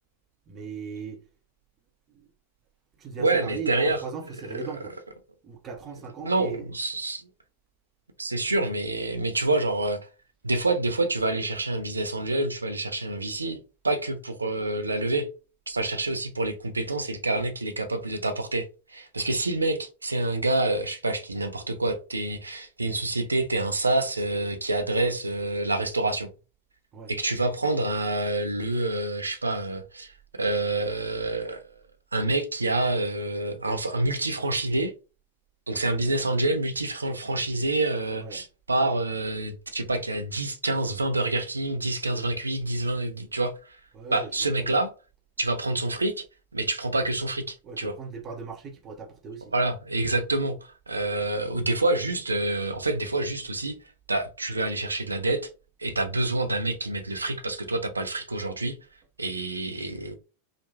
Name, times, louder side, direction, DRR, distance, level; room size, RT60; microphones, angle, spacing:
voice 1, 0.5-1.2 2.1-2.3 3.0-4.9 5.4-6.7 26.9-27.1 38.1-38.4 43.9-44.8 47.6-49.5, right 5 dB, 25° right, 0.7 m, -38 dB
voice 2, 3.2-4.0 6.2-7.3 8.2-10.0 10.4-15.3 15.7-26.3 27.1-31.6 32.1-34.9 35.7-43.8 44.1-44.9 45.4-46.2 46.5-47.9 49.5-53.8 54.1-55.5 55.8-58.8 59.2-60.1, right 2 dB, 80° right, 0.4 m, -27 dB
3.0 x 2.1 x 2.7 m
figure-of-eight pair, 90°, 0 cm